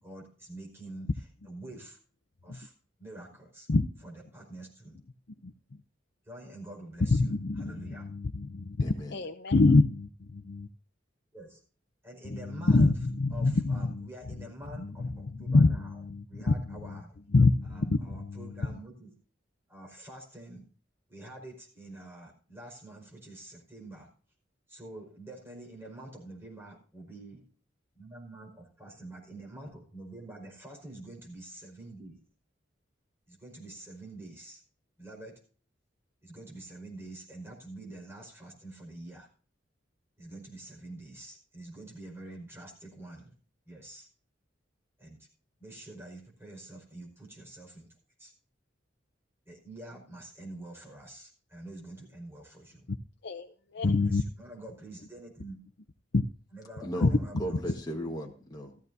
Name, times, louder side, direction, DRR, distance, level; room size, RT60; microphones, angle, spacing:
voice 1, 0.0-2.0 2.4-2.7 3.0-3.7 4.0-5.0 6.2-8.1 11.3-11.6 12.0-13.0 13.3-17.2 17.6-19.1 19.7-20.6 21.1-24.1 24.7-27.4 27.9-32.2 33.3-34.6 35.0-35.4 36.2-39.3 40.2-43.3 43.6-44.1 45.0-45.3 45.6-47.9 48.2-48.3 49.4-52.9 53.8-55.6 56.5-57.6, right 2 dB, 15° right, -1 dB, 5.1 m, -47 dB
voice 2, 7.1-8.8 9.1-10.7 12.7-14.1 14.8-14.9 15.5-16.2 17.3-18.4 53.2-53.5 53.7-54.2 56.1-56.2 57.0-57.1, left 3 dB, 60° left, 5 dB, 0.7 m, -25 dB
voice 3, 8.8-9.3 56.8-58.8, equal, 20° left, 1 dB, 1.4 m, -37 dB
15.0 x 14.0 x 2.7 m, 0.41 s
head